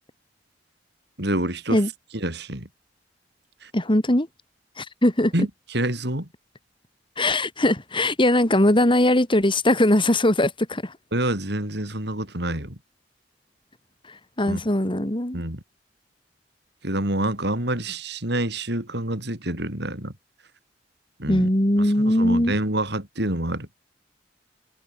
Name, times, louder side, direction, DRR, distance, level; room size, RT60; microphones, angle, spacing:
voice 1, 1.2-1.8 2.1-2.7 3.6-3.7 5.3-6.3 11.1-12.8 14.5-14.6 15.3-15.6 16.8-20.1 21.2-21.5 21.8-23.7, right 1 dB, 65° right, 7.1 m, -27 dB
voice 2, 3.7-4.3 4.8-5.3 7.2-10.9 14.4-15.4 21.3-22.5, left 1 dB, 30° left, 3.0 m, -20 dB
head